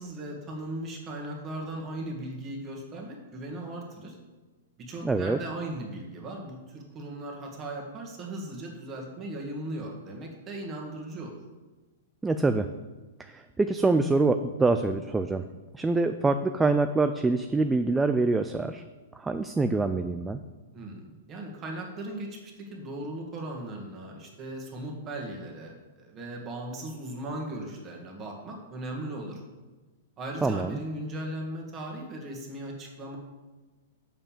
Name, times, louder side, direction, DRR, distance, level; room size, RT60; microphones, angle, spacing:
voice 1, 0.0-4.2 4.8-11.4 20.7-29.4 30.2-33.2, right 1 dB, 25° right, 0 dB, 1.9 m, -38 dB
voice 2, 5.0-5.4 12.2-12.7 13.2-15.4 15.7-18.8 19.1-20.4 30.4-30.8, right 3 dB, 10° right, 8 dB, 0.3 m, -25 dB
6.8 x 5.5 x 7.3 m, 1.2 s
hypercardioid pair, 145°, 0 cm